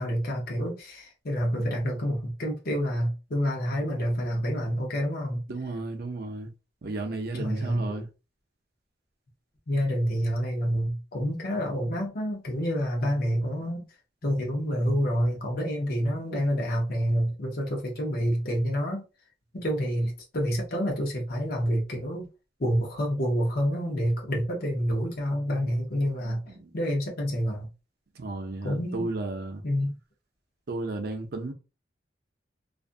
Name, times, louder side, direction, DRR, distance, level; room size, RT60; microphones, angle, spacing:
voice 1, 0.0-5.4 7.4-8.0 9.7-13.8 14.2-19.0 19.5-22.3 22.6-26.4 26.7-27.7 28.6-29.0 29.6-29.9, equal, 55° left, 0.8 m, -28 dB
voice 2, 5.5-6.5 6.8-8.1 26.5-26.7 28.1-29.6 30.7-31.5, right 2 dB, 60° right, 0.6 m, -33 dB
2.5 x 2.4 x 2.5 m
head